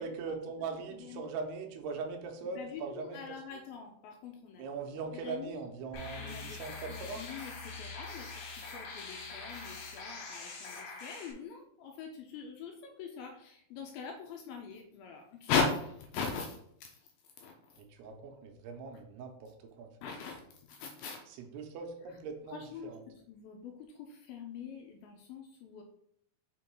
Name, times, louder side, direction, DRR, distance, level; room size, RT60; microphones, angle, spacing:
voice 1, 0.0-3.2 4.6-7.2 17.9-19.9 21.3-23.0, right 4 dB, 85° right, 4 dB, 2.7 m, -41 dB
voice 2, 2.6-4.7 5.1-5.6 6.2-6.6 6.9-17.0 17.4-17.8 20.0-20.4 20.7-21.3 22.5-25.8, left 5 dB, 80° left, 3 dB, 2.2 m, -40 dB
sound 1, 5.9-11.3, left 4 dB, 60° left, 2.5 m, -44 dB
5.9 x 3.6 x 4.5 m, 0.70 s
omnidirectional pair, 4.7 m